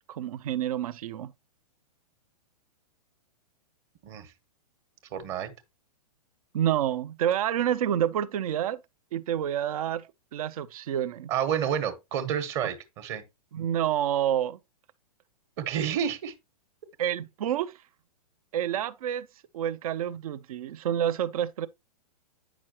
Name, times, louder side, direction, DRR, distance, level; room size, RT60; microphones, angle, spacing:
voice 1, 0.1-1.3 6.5-8.8 9.1-11.3 13.5-14.6 17.0-17.7 18.5-19.3 19.5-21.7, right 10 dB, 65° right, 0.6 m, -28 dB
voice 2, 5.1-5.5 11.3-13.2 15.6-16.3, right 8 dB, 45° right, 1.3 m, -29 dB
8.9 x 6.2 x 2.9 m
hypercardioid pair, 120°, 20 cm